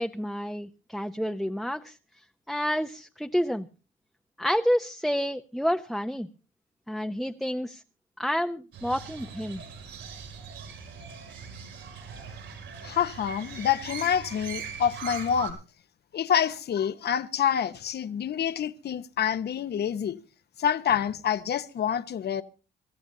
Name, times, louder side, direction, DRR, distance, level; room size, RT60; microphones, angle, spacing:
voice 1, 0.0-2.0 2.5-3.7 4.4-6.3 6.9-7.8 8.2-9.6, equal, ahead, 0.7 m, -29 dB
Crow, 8.7-15.5, right 6 dB, 75° right, 5.4 m, -41 dB
voice 2, 12.8-15.6 16.1-20.2 20.6-22.4, left 8 dB, 55° left, 1.0 m, -27 dB
26.0 x 14.0 x 2.8 m
cardioid pair, 90°, 20 cm